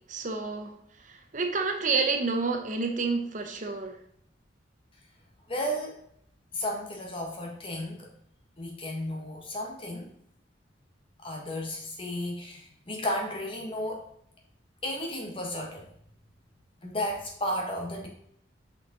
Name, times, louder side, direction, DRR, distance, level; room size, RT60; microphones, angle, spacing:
voice 1, 0.1-0.7 1.1-3.9, right 4 dB, 45° right, 4 dB, 0.7 m, -29 dB
voice 2, 5.5-6.0 6.5-8.1 8.6-10.1 11.2-14.0 14.8-15.9 16.8-18.1, left 1 dB, 30° left, 0 dB, 1.5 m, -33 dB
6.4 x 5.4 x 3.9 m, 0.68 s
head